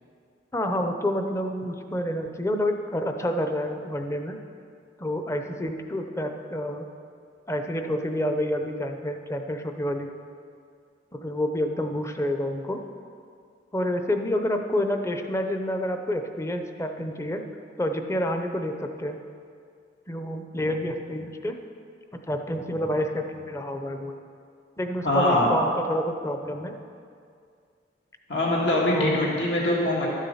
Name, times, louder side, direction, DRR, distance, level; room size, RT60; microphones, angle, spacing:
voice 1, 0.5-4.4 5.0-6.9 7.5-10.1 11.2-12.8 13.7-17.4 17.8-19.2 20.1-21.6 22.1-24.1 24.8-26.8 28.9-29.2, left 1 dB, 15° left, 5 dB, 0.7 m, -28 dB
voice 2, 25.0-25.5 28.3-30.1, left 1 dB, 75° left, -4 dB, 2.0 m, -23 dB
13.0 x 7.4 x 5.6 m, 2.3 s
head